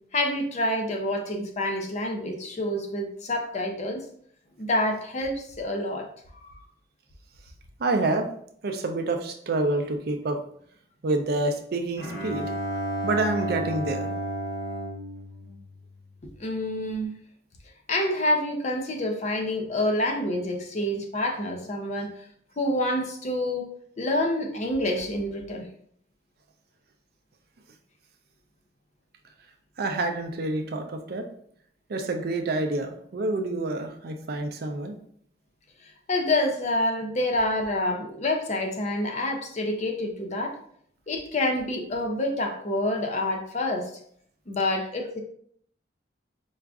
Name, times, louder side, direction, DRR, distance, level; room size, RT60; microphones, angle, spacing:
voice 1, 0.1-4.0 4.6-6.1 6.4-6.5 16.4-17.1 17.9-22.1 22.6-23.7 24.0-25.6 36.1-40.6 41.1-43.9 44.5-45.2, left 1 dB, 40° left, 3 dB, 0.5 m, -27 dB
voice 2, 7.8-8.3 8.6-10.4 11.0-12.5 13.0-14.1 29.8-31.2 31.9-34.9, right 2 dB, 55° right, 5 dB, 0.4 m, -27 dB
Bowed string instrument, 12.0-16.3, right 1 dB, 70° left, 0.8 m, -32 dB
4.6 x 2.5 x 2.3 m, 0.63 s
head